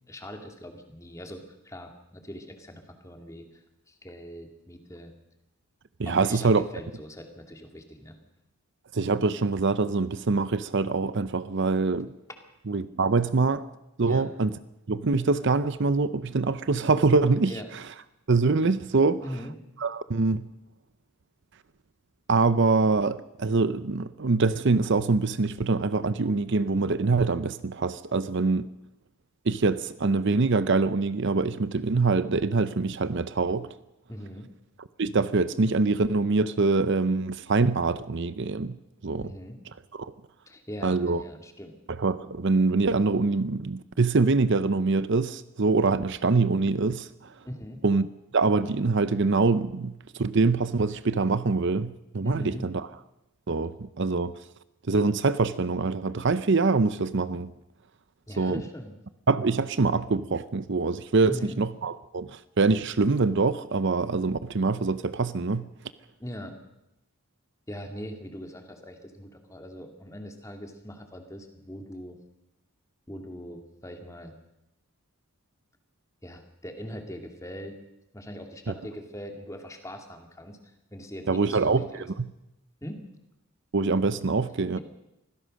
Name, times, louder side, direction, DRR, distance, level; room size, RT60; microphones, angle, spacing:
voice 1, 0.1-5.1 6.0-8.2 14.0-14.3 17.4-17.7 19.2-19.5 34.1-34.5 39.2-39.6 40.5-41.7 47.4-47.8 52.2-52.7 58.3-59.0 61.2-61.6 66.2-66.6 67.7-72.2 73.1-74.3 76.2-77.8 78.1-80.6 80.9-82.1 82.8-83.0 84.7-84.8, equal, 15° left, 2.3 m, -41 dB
voice 2, 6.0-6.6 8.9-12.1 12.7-13.6 14.0-14.5 14.9-17.5 18.3-19.2 19.8-20.5 22.3-28.7 29.5-33.7 35.0-38.8 39.0-39.3 40.0-40.1 40.8-41.2 42.0-47.1 47.8-48.1 48.3-52.7 53.5-54.4 54.9-57.5 58.4-58.6 59.3-65.6 81.3-81.9 83.7-84.8, right 3 dB, 55° right, 0.7 m, -24 dB
25.0 x 16.5 x 6.4 m
head